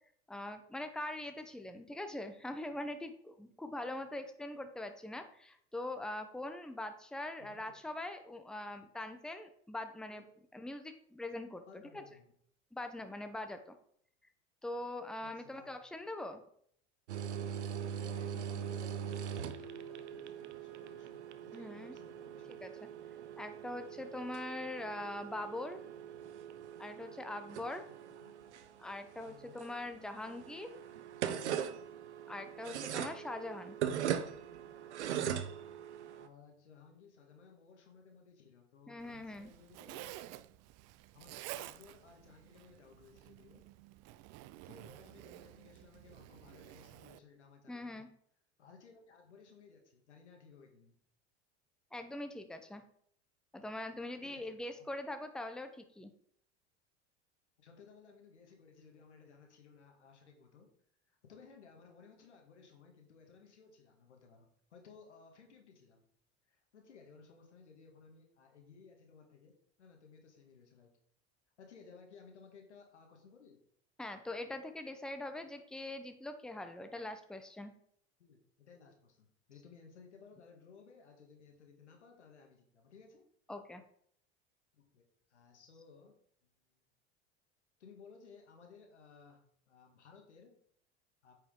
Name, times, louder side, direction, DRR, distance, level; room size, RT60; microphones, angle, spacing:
voice 1, 0.3-10.2 10.5-12.0 12.7-13.8 14.6-16.4 21.5-22.0 22.6-22.9 23.4-25.8 26.8-27.9 28.8-30.7 32.3-33.8 38.9-39.5 47.7-48.1 51.9-52.8 53.5-56.1 74.0-77.7 83.5-83.8, left 1 dB, ahead, 7 dB, 0.9 m, -42 dB
voice 2, 7.4-7.8 10.1-10.3 11.6-12.3 15.2-15.8 18.0-22.6 28.1-28.4 29.2-29.6 36.1-40.1 41.1-43.6 44.6-48.0 48.6-50.9 54.2-54.5 57.6-60.7 61.1-66.0 66.5-70.9 71.6-73.6 78.2-83.3 84.7-85.0 85.3-86.1 86.6-86.8 87.8-90.6 91.2-91.3, left 5 dB, 90° left, 3 dB, 1.9 m, -59 dB
sound 1, 17.1-36.3, right 9 dB, 85° right, 0.7 m, -41 dB
Zipper (clothing), 39.0-47.2, right 15 dB, 50° right, 0.5 m, -51 dB
8.8 x 5.5 x 3.8 m, 0.65 s
hypercardioid pair, 85°, 33 cm